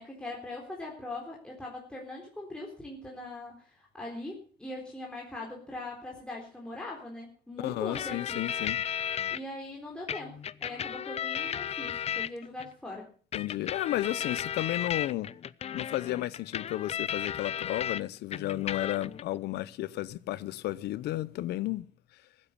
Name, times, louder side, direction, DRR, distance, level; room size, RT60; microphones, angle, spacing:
voice 1, 0.0-8.4 9.3-10.4 10.6-13.1, left 2 dB, 5° left, 3.8 m, -41 dB
voice 2, 7.6-8.8 13.3-15.3 15.7-21.9, left 15 dB, 75° left, 0.9 m, -33 dB
sound 1, 7.9-9.4 10.1-12.7 13.3-18.0 18.3-19.2, left 9 dB, 40° left, 0.6 m, -34 dB
15.5 x 9.8 x 7.0 m
cardioid pair, 110°, 17 cm